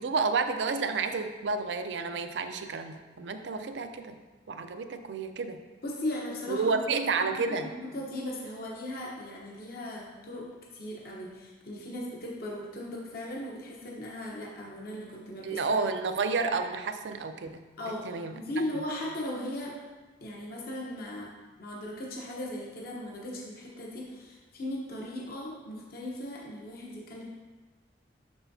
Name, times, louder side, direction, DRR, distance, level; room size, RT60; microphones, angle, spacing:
voice 1, 0.0-4.2 4.5-5.6 6.5-7.7 15.4-17.6 18.0-18.3, right 4 dB, 65° right, 8 dB, 0.4 m, -30 dB
voice 2, 5.8-6.8 7.2-15.6 17.8-19.8 20.2-21.3 21.6-27.3, left 1 dB, 55° left, -3 dB, 1.0 m, -38 dB
6.7 x 6.0 x 2.7 m, 1.3 s
head